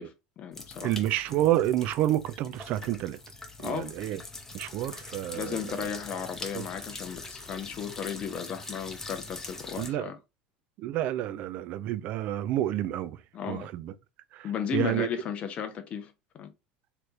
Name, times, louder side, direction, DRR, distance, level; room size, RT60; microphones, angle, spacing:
voice 1, 0.0-0.9 3.6-3.9 5.3-10.2 13.3-13.7 14.4-16.5, left 8 dB, 40° left, 0.6 m, -35 dB
sound 1, 0.5-9.9, left 3 dB, 15° left, 0.8 m, -43 dB
voice 2, 0.8-3.2 3.6-4.2 4.5-5.9 6.5-6.7 9.8-10.1 10.8-13.2 13.5-13.9 14.3-14.5 14.7-15.1, right 13 dB, 50° right, 0.4 m, -29 dB
3.2 x 2.9 x 2.4 m
hypercardioid pair, 75°, 3 cm